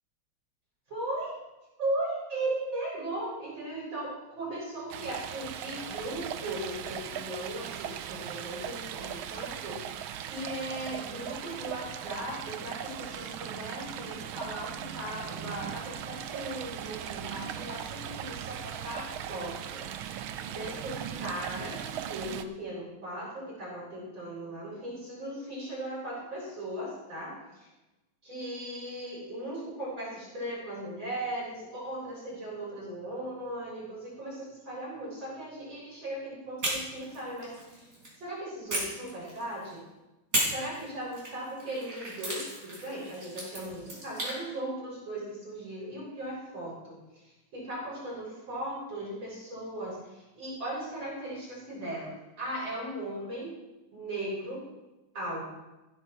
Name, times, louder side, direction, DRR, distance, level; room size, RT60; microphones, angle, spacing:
voice 1, 0.9-1.4 1.8-21.8 22.1-27.7 28.2-37.9 38.2-39.8 40.4-47.2 47.5-52.1 52.4-53.5 53.9-54.6 55.1-55.5, right 1 dB, 65° right, -7 dB, 7.3 m, -38 dB
Stream, 4.9-22.4, right 10 dB, 80° right, 1.6 m, -39 dB
sound 1, 36.6-38.1 38.7-39.7 40.3-44.4, right 1 dB, 40° right, 5.3 m, -35 dB
16.5 x 10.5 x 4.6 m, 1.0 s
omnidirectional pair, 2.3 m